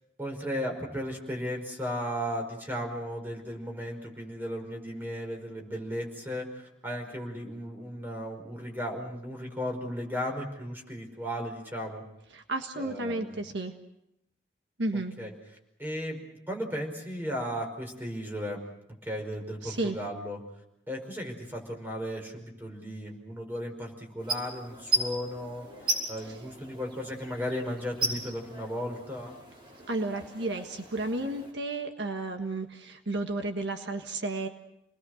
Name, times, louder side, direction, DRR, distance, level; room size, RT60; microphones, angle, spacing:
voice 1, 0.2-12.0 12.8-13.3 15.2-15.3 15.8-16.2 16.5-18.6 19.0-20.4 20.9-25.7 26.1-29.4, equal, 10° right, 1 dB, 5.2 m, -35 dB
voice 2, 12.3-13.7 14.8-15.1 19.6-20.0 29.9-34.5, right 2 dB, 70° right, 5 dB, 1.6 m, -32 dB
sound 1, 24.2-31.5, right 1 dB, 25° right, 5.7 m, -36 dB
30.0 x 20.5 x 6.5 m, 0.83 s
head